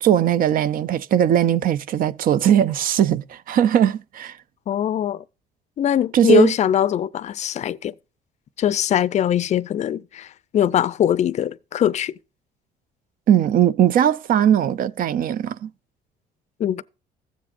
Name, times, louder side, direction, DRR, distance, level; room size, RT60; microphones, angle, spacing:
voice 1, 0.0-4.4 6.1-6.5 13.3-15.7, right 10 dB, 55° right, 0.6 m, -19 dB
voice 2, 4.7-5.2 5.8-7.9 8.6-12.1 16.6-16.8, left 10 dB, 40° left, 0.5 m, -21 dB
15.0 x 7.5 x 2.5 m
cardioid pair, 110°, 17 cm